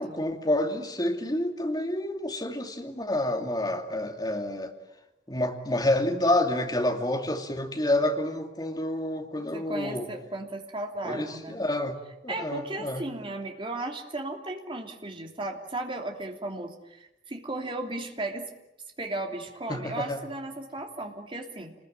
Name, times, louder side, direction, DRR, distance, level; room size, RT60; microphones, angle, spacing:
voice 1, 0.0-4.7 5.3-10.1 11.0-12.0 12.2-13.0 19.7-20.2, left 1 dB, 25° left, 4 dB, 2.6 m, -28 dB
voice 2, 9.5-11.6 12.3-18.5 19.0-21.7, right 2 dB, 30° right, 3 dB, 3.1 m, -35 dB
28.0 x 21.0 x 9.1 m, 0.96 s
head